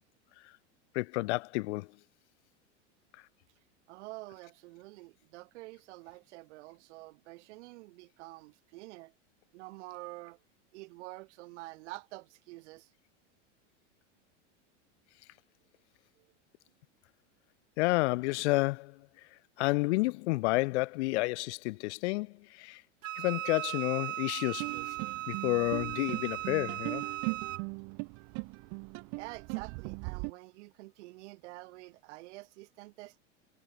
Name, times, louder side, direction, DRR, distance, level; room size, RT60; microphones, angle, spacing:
voice 1, 0.9-1.9 17.8-19.1 19.6-22.8 23.2-24.9 25.3-27.1, left 23 dB, 65° left, 0.5 m, -30 dB
voice 2, 3.9-9.1 9.5-10.4 10.7-12.9 16.2-16.3 29.1-33.2, right 21 dB, 65° right, 1.9 m, -48 dB
Wind instrument woodwind instrument, 23.0-27.6, right 14 dB, 85° right, 2.6 m, -38 dB
sound 1, 24.6-30.3, right 36 dB, 45° right, 0.7 m, -39 dB
supercardioid pair, 130°, 37 cm